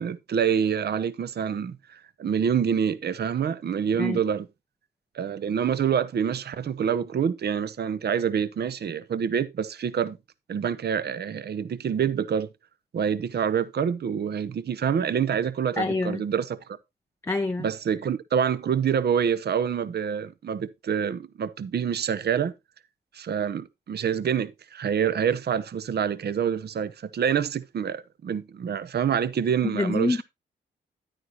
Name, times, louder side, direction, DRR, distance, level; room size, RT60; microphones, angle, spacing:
voice 1, 0.0-4.5 5.1-10.2 10.5-12.5 12.9-16.6 17.6-22.5 23.1-30.2, right 7 dB, 55° right, 0.7 m, -26 dB
voice 2, 15.8-16.2 17.2-17.7 29.7-30.2, left 3 dB, 15° left, 0.5 m, -26 dB
9.8 x 8.9 x 2.9 m
cardioid pair, 60°, 21 cm